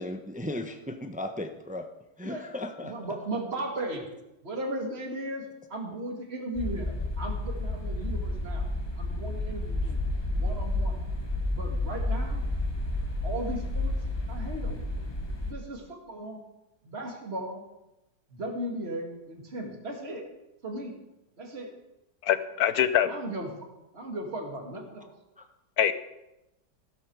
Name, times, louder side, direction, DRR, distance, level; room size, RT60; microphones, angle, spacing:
voice 1, 0.0-1.9 2.2-2.9 25.4-25.5, left 1 dB, 10° right, 6 dB, 0.5 m, -36 dB
voice 2, 2.8-4.1 4.4-8.7 9.0-10.0 10.3-11.0 11.5-12.4 13.2-14.0 14.3-14.8 15.5-16.4 16.8-17.6 18.3-20.3 20.6-21.0 21.4-21.7 23.1-23.5 23.9-25.1, right 1 dB, 35° right, 2 dB, 2.5 m, -36 dB
sound 1, 6.5-15.5, left 2 dB, 15° left, 1.2 m, -31 dB
voice 3, 22.2-23.1 25.8-25.9, left 10 dB, 65° left, 12 dB, 1.2 m, -24 dB
15.5 x 13.0 x 4.8 m, 0.94 s
omnidirectional pair, 1.9 m